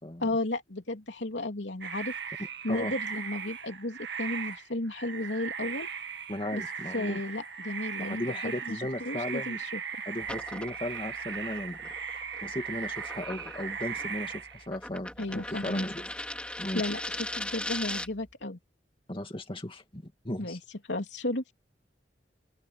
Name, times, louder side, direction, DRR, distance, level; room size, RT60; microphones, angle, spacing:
voice 1, 0.2-2.1 2.6-5.9 6.5-6.6 6.9-9.8 15.2-15.9 16.7-18.6 20.4-20.6 20.9-21.5, left 2 dB, 80° left, 3.2 m, -34 dB
sound 1, 1.8-14.7, right 6 dB, 65° right, 2.1 m, -38 dB
voice 2, 6.3-7.2 8.0-9.6 10.1-11.8 12.4-16.1 16.6-16.8 19.1-20.6, left 1 dB, 30° left, 2.5 m, -36 dB
sound 2, 10.2-18.3, left 1 dB, 5° left, 3.7 m, -39 dB
open air
head